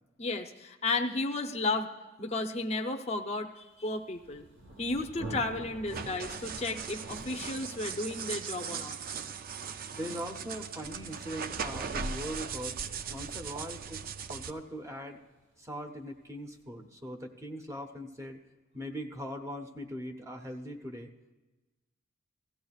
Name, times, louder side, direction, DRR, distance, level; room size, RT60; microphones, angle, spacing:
voice 1, 0.2-1.9 2.2-4.5 4.8-9.0, left 2 dB, 30° left, 3 dB, 0.7 m, -33 dB
Thunder, 3.9-15.4, right 2 dB, 65° right, 1.3 m, -48 dB
sound 1, 5.9-14.5, right 6 dB, 45° right, 0.4 m, -39 dB
voice 2, 9.9-12.8 13.1-14.0 14.3-15.2 15.6-18.4 18.7-21.1, equal, 15° right, 4 dB, 0.8 m, -40 dB
16.5 x 15.0 x 2.4 m, 1.1 s
head